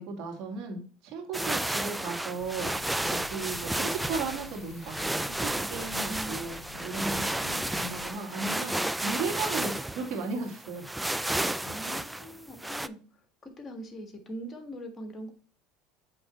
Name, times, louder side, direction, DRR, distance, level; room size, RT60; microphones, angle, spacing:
voice 1, 0.0-2.7 3.1-10.8, right 4 dB, 60° right, 1 dB, 1.9 m, -36 dB
sound 1, 1.3-12.9, right 1 dB, 5° right, 0.3 m, -32 dB
sound 2, 2.4-8.1, left 8 dB, 65° left, 0.6 m, -48 dB
voice 2, 6.0-6.5 11.6-15.3, right 1 dB, 25° left, 4 dB, 1.7 m, -42 dB
8.4 x 3.2 x 4.2 m, 0.41 s
hypercardioid pair, 80°, 0 cm